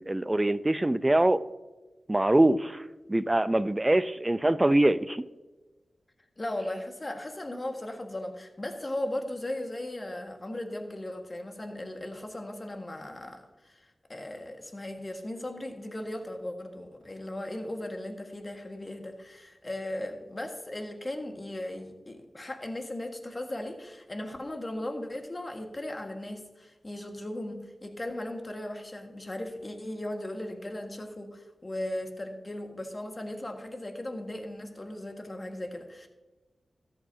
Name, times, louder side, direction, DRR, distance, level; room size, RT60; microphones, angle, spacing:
voice 1, 0.0-1.4 2.1-2.8 3.1-5.2, right 1 dB, 25° right, 15 dB, 0.5 m, -24 dB
voice 2, 6.4-36.1, left 1 dB, 35° left, 4 dB, 1.6 m, -37 dB
13.5 x 8.0 x 2.7 m, 1.2 s
cardioid pair, 40°, 0 cm